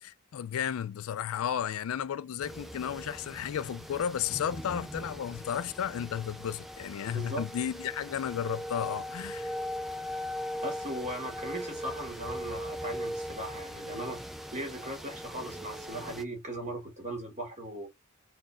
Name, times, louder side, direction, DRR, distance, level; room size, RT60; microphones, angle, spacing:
voice 1, 0.0-9.6, left 9 dB, 70° left, 0.3 m, -33 dB
sound 1, 2.4-16.2, equal, ahead, 0.4 m, -40 dB
voice 2, 10.6-14.2 14.5-17.9, right 1 dB, 35° right, 1.9 m, -38 dB
4.2 x 2.3 x 3.3 m
head